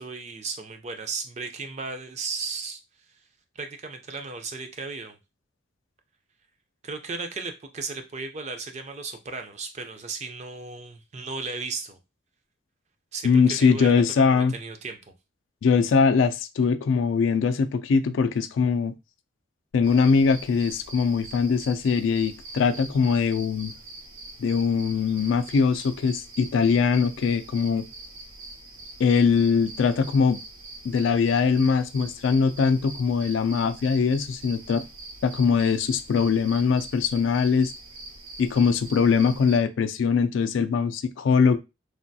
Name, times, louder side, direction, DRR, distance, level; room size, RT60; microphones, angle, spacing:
voice 1, 0.0-2.8 3.6-5.2 6.8-12.0 13.1-15.0, right 4 dB, 35° right, 0.4 m, -35 dB
voice 2, 13.2-14.5 15.6-18.9 19.7-23.7 24.4-27.8 29.0-30.4 30.8-34.8 35.2-37.7 38.4-41.6, left 5 dB, 75° left, 0.3 m, -22 dB
sound 1, 19.8-39.6, right 2 dB, 90° right, 0.8 m, -43 dB
3.2 x 2.2 x 2.6 m
head